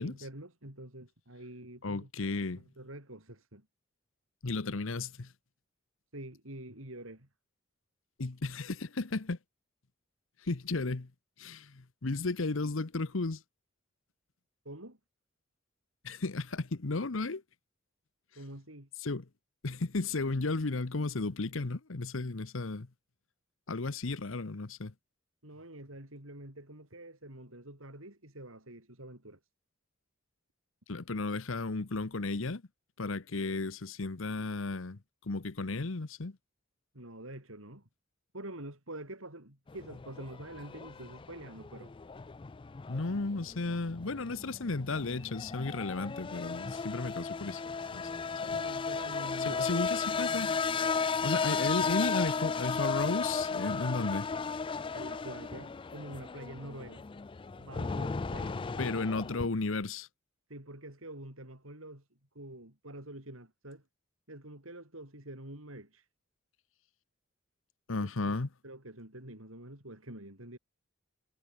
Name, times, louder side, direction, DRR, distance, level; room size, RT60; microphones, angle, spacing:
voice 1, 0.0-2.1 2.5-3.7 6.1-7.3 14.6-15.0 18.4-18.9 25.4-29.4 36.9-37.9 38.3-41.9 48.5-49.7 54.9-57.0 57.6-59.0 60.5-62.0 62.3-63.8 64.3-66.0 68.0-68.4 68.6-70.6, right 1 dB, 80° right, 7.8 m, -46 dB
voice 2, 1.8-2.6 4.4-5.3 8.2-9.4 10.4-11.1 11.4-13.4 16.0-17.4 19.0-19.3 19.6-22.9 23.7-24.9 30.9-32.6 33.0-36.4 42.9-47.6 47.9-48.1 48.4-48.6 49.4-50.6 51.2-54.3 58.8-60.1 67.9-68.5, left 3 dB, 70° left, 1.0 m, -34 dB
sound 1, 39.7-59.5, left 5 dB, 25° left, 0.4 m, -35 dB
head